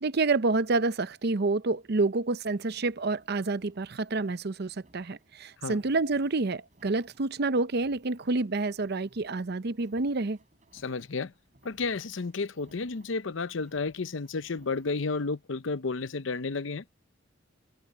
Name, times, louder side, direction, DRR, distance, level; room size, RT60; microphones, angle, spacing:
voice 1, 0.0-10.4, right 3 dB, 55° right, 0.7 m, -28 dB
sound 1, 2.5-15.1, right 1 dB, 40° right, 5.5 m, -63 dB
voice 2, 10.8-11.3 11.6-16.8, left 4 dB, 80° left, 0.7 m, -32 dB
head